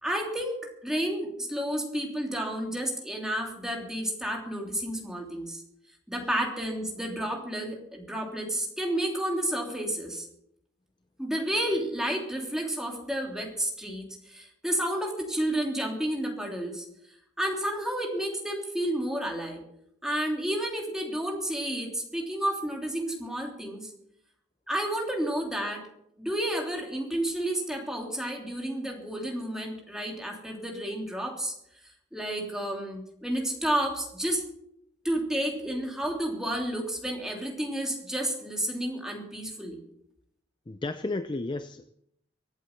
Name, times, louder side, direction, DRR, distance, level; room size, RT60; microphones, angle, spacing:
voice 1, 0.0-5.6 6.1-10.3 11.2-16.8 17.4-19.6 20.0-23.9 24.7-25.9 26.2-31.5 32.1-34.4 35.0-39.8, right 1 dB, 5° right, 0 dB, 3.2 m, -31 dB
voice 2, 40.7-41.9, left 2 dB, 25° left, 10 dB, 0.5 m, -33 dB
24.5 x 8.3 x 6.0 m, 0.74 s
head